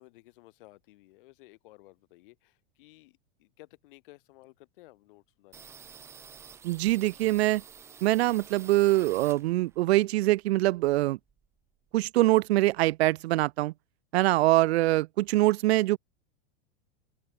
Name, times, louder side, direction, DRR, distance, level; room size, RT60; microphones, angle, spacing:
voice 1, 0.0-5.8, left 20 dB, 55° left, 2.2 m, -56 dB
sound 1, 5.5-9.9 10.2-11.6 11.9-12.0 12.2-13.0, right 7 dB, 10° right, 0.4 m, -50 dB
voice 2, 6.6-7.6 8.0-11.2 11.9-13.7 14.1-16.0, right 17 dB, 90° right, 0.5 m, -24 dB
supercardioid pair, 160°, 31 cm